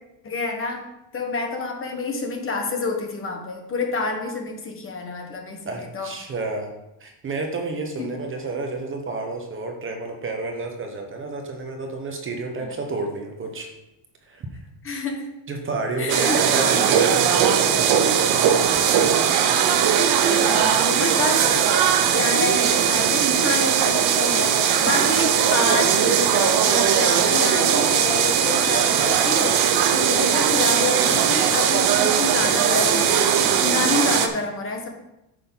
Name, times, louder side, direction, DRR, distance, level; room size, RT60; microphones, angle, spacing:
voice 1, 0.2-0.9 1.1-6.1 8.0-8.1 12.6-12.7 14.8-15.2 16.0-17.0 18.9-19.1 19.9-21.7 22.1-34.9, left 3 dB, 30° left, 3 dB, 1.3 m, -28 dB
voice 2, 5.7-6.7 7.0-13.7 14.2-14.5 15.5-19.1 19.5-19.7, right 3 dB, 25° right, 3 dB, 1.1 m, -30 dB
sound 1, 16.1-34.3, right 8 dB, 55° right, 0.9 m, -19 dB
9.8 x 6.5 x 3.9 m, 0.91 s
cardioid pair, 155°, 45 cm